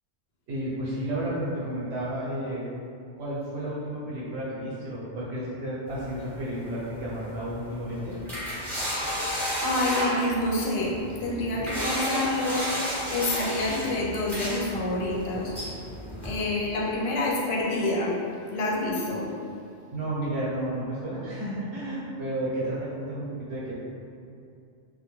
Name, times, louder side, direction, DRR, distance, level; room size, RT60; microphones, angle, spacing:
voice 1, 0.5-2.6 3.2-8.2 19.9-23.8, right 1 dB, 70° right, -8 dB, 1.0 m, -32 dB
sound 1, 5.9-16.4, equal, ahead, 0.5 m, -33 dB
voice 2, 9.6-12.6 13.1-15.6 16.2-18.1 18.5-19.3, left 2 dB, 70° left, -4 dB, 0.8 m, -27 dB
2.2 x 2.2 x 3.0 m, 2.5 s
omnidirectional pair, 1.1 m